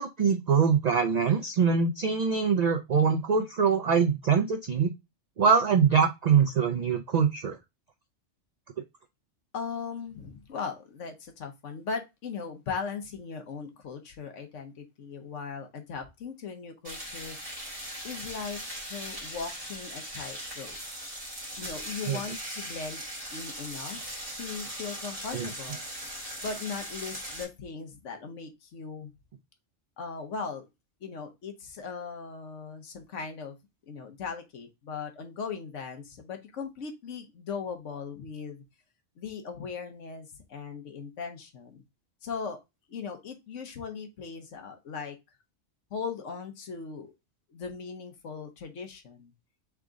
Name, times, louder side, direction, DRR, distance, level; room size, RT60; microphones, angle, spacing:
voice 1, 0.0-4.9 5.4-7.6 22.1-22.2 25.3-25.5, right 6 dB, 65° right, 7 dB, 0.4 m, -23 dB
voice 2, 9.5-17.4 18.0-20.8 21.6-23.0 23.3-25.8 26.4-29.1 30.0-30.7 31.0-33.6 33.9-38.6 39.2-41.8 42.2-42.6 42.9-45.2 45.9-47.1 47.5-49.3, left 5 dB, 75° left, 6 dB, 1.2 m, -38 dB
sound 1, 16.8-27.4, equal, 30° right, 2.2 m, -39 dB
3.6 x 3.6 x 3.7 m, 0.22 s
omnidirectional pair, 1.3 m